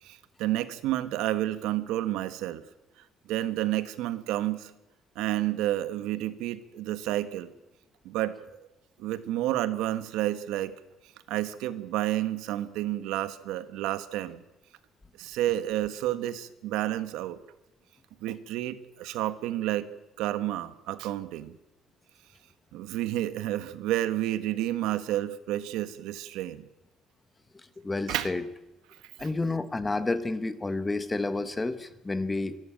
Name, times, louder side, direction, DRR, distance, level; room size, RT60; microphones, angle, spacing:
voice 1, 0.0-2.6 3.3-4.7 5.1-7.5 8.0-8.7 9.0-10.7 11.3-14.4 15.2-17.4 18.2-19.9 20.2-21.5 22.7-26.6 28.1-28.3, right 14 dB, 75° right, 12 dB, 1.3 m, -30 dB
voice 2, 27.5-28.4 29.2-32.6, left 2 dB, 10° left, 12 dB, 1.0 m, -30 dB
24.5 x 12.5 x 8.9 m, 0.96 s
cardioid pair, 170°, 0 cm